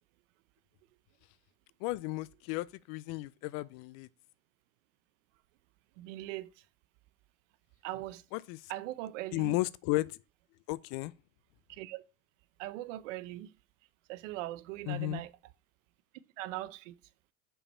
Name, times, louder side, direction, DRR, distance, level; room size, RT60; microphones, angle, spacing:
voice 1, 1.8-4.1 8.3-8.6 9.3-10.2 10.7-11.1 14.9-15.2, left 19 dB, 55° left, 0.5 m, -34 dB
voice 2, 6.0-6.6 7.8-8.2 8.7-9.6 11.7-12.0 12.6-13.5 14.1-15.3 16.4-17.0, right 15 dB, 70° right, 0.7 m, -40 dB
5.6 x 4.7 x 5.4 m
hypercardioid pair, 100°, 39 cm